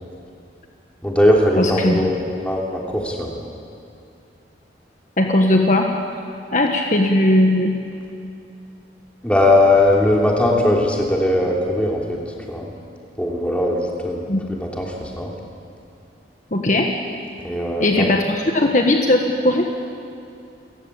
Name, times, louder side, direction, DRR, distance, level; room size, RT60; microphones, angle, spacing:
voice 1, 1.0-3.3 9.2-12.2 12.5-12.7 13.2-15.3 17.4-18.1, left 1 dB, 5° left, -2 dB, 3.1 m, -19 dB
voice 2, 1.6-2.0 5.2-5.9 6.5-7.7 14.3-14.4 16.5-16.9 17.8-19.7, left 1 dB, 40° left, 2 dB, 1.4 m, -18 dB
28.5 x 15.0 x 8.4 m, 2.5 s
head